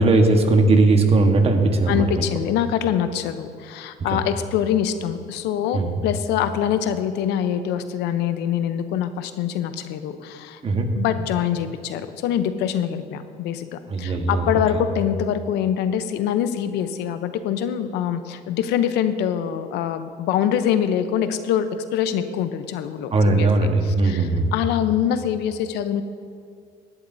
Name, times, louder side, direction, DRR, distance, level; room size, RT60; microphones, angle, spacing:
voice 1, 0.0-2.2 4.1-4.2 5.7-6.0 10.6-10.9 13.9-14.6 23.1-24.5, right 2 dB, 35° right, 4 dB, 1.3 m, -18 dB
voice 2, 1.9-10.6 11.0-23.5 23.8-26.0, left 9 dB, 85° left, 10 dB, 0.7 m, -24 dB
17.0 x 11.0 x 2.7 m, 2.3 s
cardioid pair, 110°, 17 cm